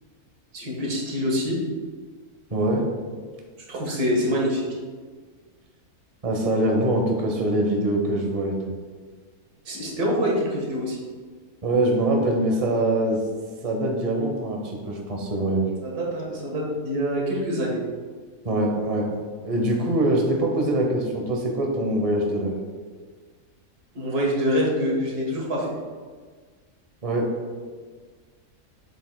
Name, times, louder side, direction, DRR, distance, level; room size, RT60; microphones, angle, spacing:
voice 1, 0.5-1.6 3.7-4.7 9.7-11.0 15.8-17.8 23.9-25.7, equal, 90° right, -2 dB, 2.1 m, -25 dB
voice 2, 2.5-2.9 6.2-8.7 11.6-13.2 13.6-15.7 18.4-19.1 19.4-22.6 27.0-27.4, right 1 dB, 30° right, 1 dB, 0.9 m, -23 dB
7.4 x 7.4 x 2.3 m, 1.5 s
omnidirectional pair, 1.6 m